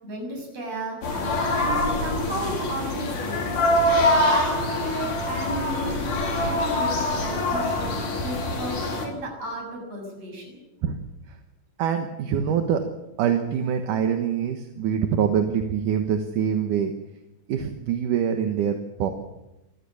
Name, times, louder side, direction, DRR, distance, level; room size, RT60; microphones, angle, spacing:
voice 1, 0.0-1.0 1.5-3.5 4.2-10.6, right 1 dB, 50° right, 2 dB, 7.9 m, -33 dB
sound 1, 1.0-9.1, left 1 dB, 75° left, 5.1 m, -24 dB
voice 2, 11.8-12.8 13.2-16.9 17.5-19.1, right 8 dB, 80° right, 6 dB, 2.9 m, -24 dB
26.0 x 15.0 x 8.6 m, 0.95 s
omnidirectional pair, 3.7 m